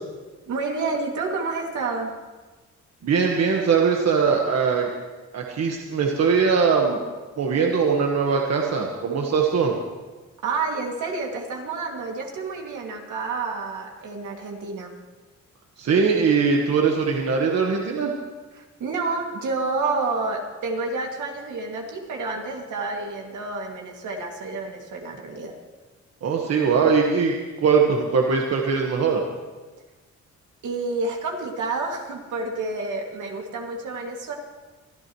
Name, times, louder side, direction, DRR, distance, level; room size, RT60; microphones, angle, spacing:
voice 1, 0.5-2.1 10.4-14.9 18.5-25.5 30.6-34.3, right 3 dB, 80° right, 0 dB, 2.5 m, -29 dB
voice 2, 3.0-4.9 5.3-7.0 7.4-9.8 15.8-18.1 26.2-29.2, right 5 dB, 60° right, 0 dB, 1.5 m, -21 dB
24.0 x 13.5 x 3.2 m, 1.3 s
cardioid pair, 125°, 30 cm